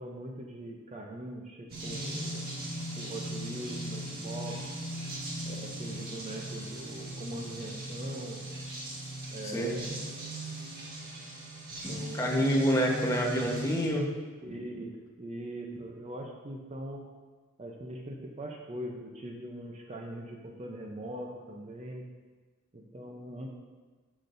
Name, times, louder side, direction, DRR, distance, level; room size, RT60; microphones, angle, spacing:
voice 1, 0.0-2.4 3.0-4.6 5.5-8.4 9.3-10.2 11.9-12.5 13.0-13.3 14.4-17.0 17.6-22.0 22.7-23.5, right 1 dB, 30° right, 1 dB, 0.6 m, -41 dB
sound 1, 1.7-13.9, equal, 45° right, 1.7 m, -39 dB
voice 2, 9.4-9.7 11.8-14.1, equal, 15° left, -1 dB, 1.1 m, -28 dB
12.0 x 5.9 x 2.6 m, 1.3 s
head